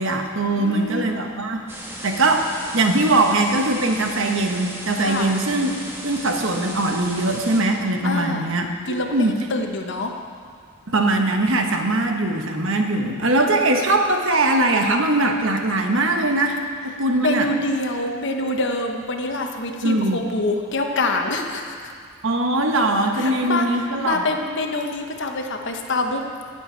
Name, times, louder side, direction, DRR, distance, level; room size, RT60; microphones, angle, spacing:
voice 1, 0.0-1.6 2.0-5.8 6.0-9.4 10.9-17.5 19.8-20.2 22.2-24.3, right 2 dB, 65° right, 3 dB, 1.2 m, -21 dB
voice 2, 0.5-1.1 5.0-5.3 8.0-8.5 8.9-10.2 13.4-13.5 17.1-21.9 23.2-26.2, left 2 dB, 60° left, 3 dB, 1.1 m, -26 dB
sound 1, 1.7-7.6, right 1 dB, 10° right, 1.4 m, -35 dB
18.0 x 7.8 x 4.6 m, 2.1 s
head